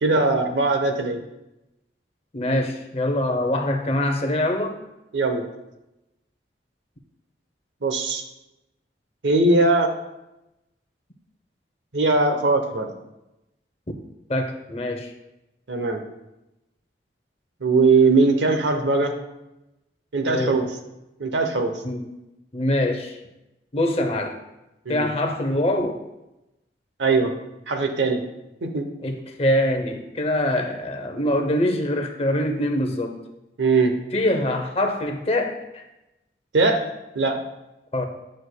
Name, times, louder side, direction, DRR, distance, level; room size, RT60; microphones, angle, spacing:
voice 1, 0.0-1.2 5.1-5.4 7.8-8.2 9.2-9.9 11.9-12.9 15.7-16.0 17.6-19.1 20.1-20.7 21.2-21.7 24.9-25.1 27.0-27.3 27.7-28.2 28.6-28.9 33.6-33.9 36.5-36.9 37.1-37.4, right 3 dB, 90° right, 6 dB, 0.8 m, -20 dB
voice 2, 2.3-4.8 14.3-15.1 20.3-20.6 21.8-22.1 22.5-23.2 23.7-24.4 24.9-26.0 29.0-33.2 34.1-35.9 37.9-38.1, left 1 dB, 35° left, 5 dB, 0.6 m, -24 dB
9.6 x 6.3 x 2.2 m, 0.94 s
head